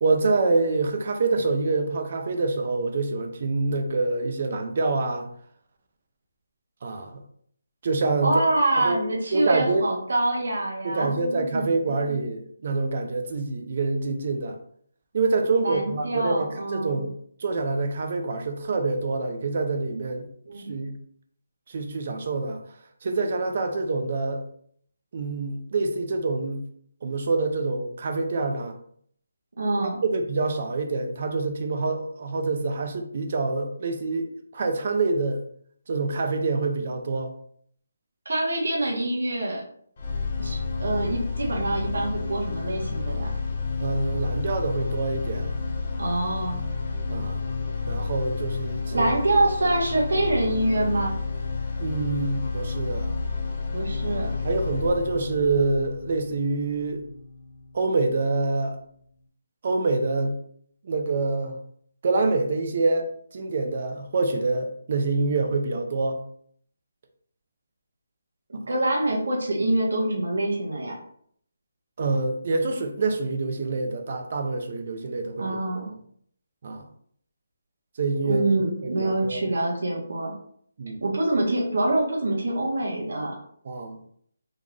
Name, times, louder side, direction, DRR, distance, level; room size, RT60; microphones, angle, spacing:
voice 1, 0.0-5.3 6.8-7.2 7.8-8.3 8.8-9.0 9.3-9.8 10.8-14.6 15.1-17.1 17.4-20.3 20.7-20.9 21.7-22.6 23.0-24.4 25.1-26.6 27.0-28.8 29.8-35.4 35.9-37.3 43.8-45.6 47.1-47.4 47.9-49.1 51.8-53.1 54.1-57.0 57.7-58.8 59.6-60.4 60.8-61.6 62.0-66.2 72.0-75.9 76.6-76.8 78.0-78.4 78.8-79.4 80.8-81.0 83.6-84.0, right 3 dB, 35° right, 5 dB, 0.5 m, -26 dB
voice 2, 8.2-12.2 15.6-17.0 20.5-20.7 29.6-30.0 38.2-39.6 40.4-43.3 46.0-46.6 48.9-51.1 53.7-54.3 68.5-71.0 75.4-75.9 78.2-80.3 81.0-83.4, right 2 dB, 75° right, -2 dB, 1.2 m, -25 dB
sound 1, 40.0-58.0, left 4 dB, 30° left, 0.5 m, -30 dB
3.7 x 2.5 x 3.1 m, 0.64 s
hypercardioid pair, 175°, 0 cm